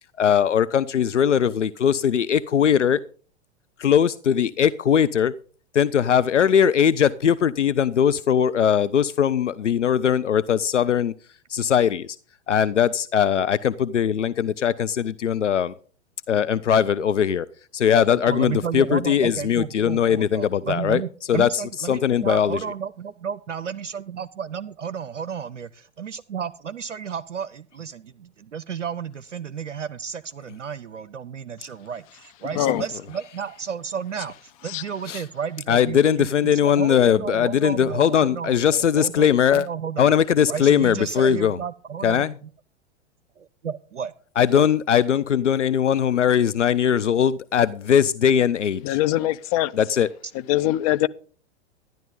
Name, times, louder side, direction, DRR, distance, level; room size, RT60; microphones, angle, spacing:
voice 1, 0.2-3.0 3.8-5.3 5.7-11.1 11.5-12.2 12.5-15.7 16.3-17.5 17.7-21.0 21.3-22.6 35.1-35.2 35.7-39.7 40.0-41.6 42.0-42.3 44.4-49.0 49.8-50.1, left 8 dB, 85° left, 0.5 m, -20 dB
voice 2, 18.1-25.7 26.0-40.1 40.5-42.5 43.4-44.1 44.5-44.7, right 7 dB, 85° right, 0.5 m, -32 dB
voice 3, 48.8-49.7 50.5-51.1, left 15 dB, 30° left, 0.4 m, -22 dB
12.5 x 10.5 x 3.7 m
figure-of-eight pair, 100°, 35 cm